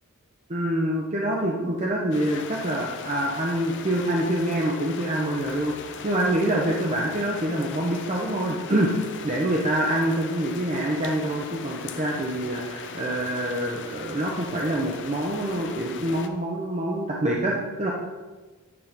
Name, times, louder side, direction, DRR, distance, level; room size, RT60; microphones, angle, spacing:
voice 1, 0.5-5.7 6.0-8.9 9.2-17.9, right 1 dB, 30° right, -2 dB, 0.7 m, -26 dB
sound 1, 2.1-16.3, left 5 dB, 55° left, 0.6 m, -39 dB
9.6 x 3.7 x 5.2 m, 1.3 s
head